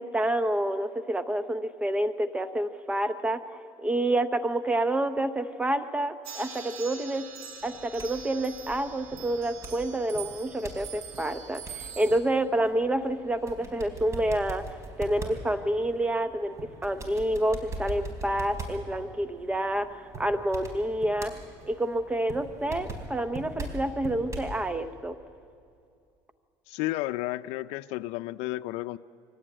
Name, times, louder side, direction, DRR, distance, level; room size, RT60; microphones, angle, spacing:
voice 1, 0.0-3.4 3.8-7.3 7.6-21.3 21.6-25.2, right 1 dB, 10° right, 10 dB, 0.7 m, -28 dB
sound 1, 6.2-12.2, right 7 dB, 75° right, 3.9 m, -43 dB
sound 2, 7.6-24.6, right 1 dB, 30° right, 4.2 m, -42 dB
voice 2, 26.7-29.0, left 17 dB, 85° left, 9 dB, 0.5 m, -32 dB
24.0 x 17.5 x 9.0 m, 2.4 s
cardioid pair, 135°, 10 cm